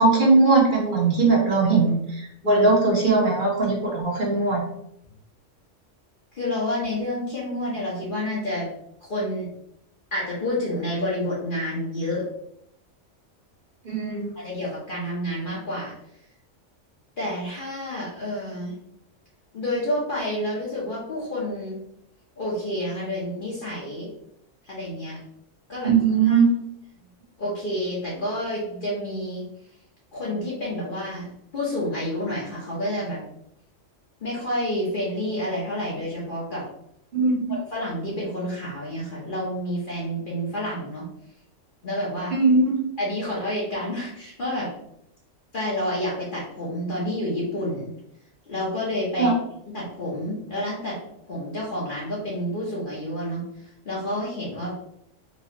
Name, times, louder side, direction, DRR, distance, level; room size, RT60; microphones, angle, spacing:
voice 1, 0.0-4.6 13.8-14.3 25.8-26.5 37.1-37.3 42.3-42.8 49.2-49.3, right 3 dB, 45° right, -3 dB, 1.1 m, -19 dB
voice 2, 6.3-8.7 9.0-9.5 10.1-12.3 14.4-15.9 17.2-18.8 19.5-21.8 22.4-24.1 24.6-25.2 25.7-25.9 26.2-26.4 27.4-29.4 30.1-33.2 34.2-36.7 37.5-41.0 41.8-42.3 43.0-44.7 45.5-47.9 48.5-49.3 49.7-51.0 51.3-53.4 53.8-54.7, left 1 dB, 45° left, -7 dB, 0.9 m, -29 dB
4.1 x 2.4 x 2.9 m, 0.77 s
omnidirectional pair, 1.3 m